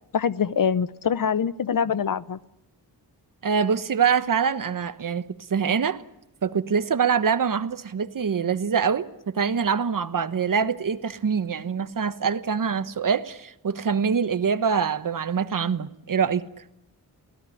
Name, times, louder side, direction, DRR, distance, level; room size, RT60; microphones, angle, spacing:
voice 1, 0.1-2.4, left 7 dB, 60° left, 0.8 m, -24 dB
voice 2, 3.4-5.2 5.5-6.0 6.4-9.1 9.3-16.4, right 6 dB, 60° right, 1.2 m, -24 dB
24.5 x 17.0 x 9.9 m
wide cardioid pair, 85°, 38 cm